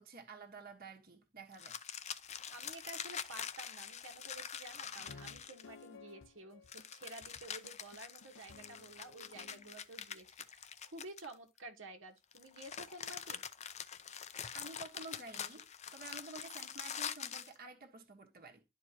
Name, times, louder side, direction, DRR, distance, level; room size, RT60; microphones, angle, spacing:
voice 1, 0.0-1.8 14.5-15.7 15.9-18.6, right 3 dB, 50° right, 1.3 m, -51 dB
sound 1, 1.5-5.8 6.7-11.6 12.3-17.5, left 8 dB, 35° left, 0.5 m, -45 dB
voice 2, 2.5-13.4, right 2 dB, 70° right, 1.4 m, -52 dB
sound 2, 5.0-9.9, left 4 dB, 80° left, 0.9 m, -57 dB
11.5 x 4.7 x 2.8 m
head